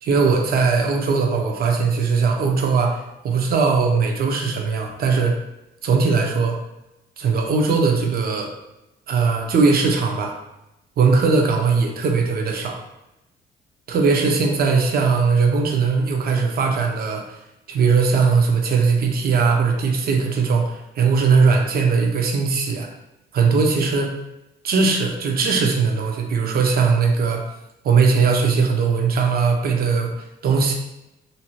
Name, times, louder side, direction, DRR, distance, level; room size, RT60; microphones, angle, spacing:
voice 1, 0.0-5.4 5.8-6.6 7.2-8.5 9.1-10.4 11.0-12.8 13.9-17.4 17.7-22.9 23.3-24.2 24.6-27.4 27.8-30.1 30.4-30.7, right 5 dB, 50° right, 3 dB, 0.5 m, -19 dB
2.6 x 2.1 x 2.9 m, 0.91 s
cardioid pair, 90°, 20 cm